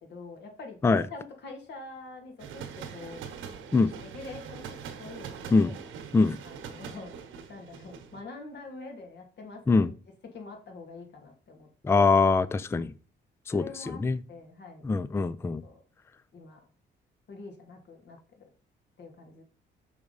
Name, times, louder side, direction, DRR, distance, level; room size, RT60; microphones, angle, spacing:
voice 1, 0.0-2.7 2.9-3.4 4.0-5.7 6.4-7.1 7.5-9.9 10.3-11.7 11.9-12.1 13.5-14.0 14.3-14.8 15.6-15.8 16.3-16.6 17.3-18.5 19.0-19.4, left 3 dB, 60° left, 2.1 m, -45 dB
sound 1, 2.4-8.2, right 7 dB, 85° right, 1.1 m, -43 dB
voice 2, 11.8-12.9 13.5-14.2 14.8-15.6, left 4 dB, 15° left, 0.3 m, -23 dB
6.2 x 3.5 x 5.4 m
cardioid pair, 90°, 20 cm